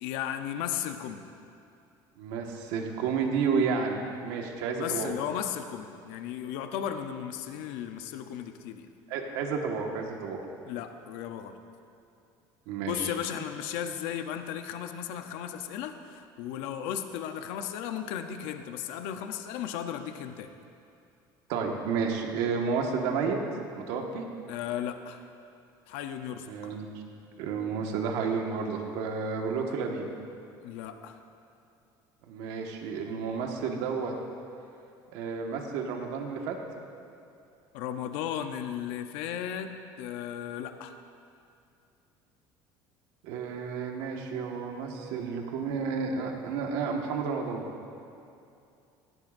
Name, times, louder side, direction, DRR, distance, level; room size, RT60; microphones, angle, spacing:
voice 1, 0.0-1.2 4.8-8.9 10.7-11.6 12.8-20.5 24.5-25.2 25.9-26.7 30.6-31.2 37.7-39.7 40.0-40.9, left 9 dB, 70° left, 7 dB, 0.8 m, -35 dB
voice 2, 2.2-5.1 9.1-10.4 12.7-13.1 21.5-23.4 23.8-24.2 26.5-26.9 27.4-30.0 32.3-34.1 35.1-36.5 43.2-47.6, right 5 dB, 75° right, 1 dB, 1.6 m, -31 dB
17.0 x 16.0 x 2.6 m, 2.6 s
cardioid pair, 180°, 9 cm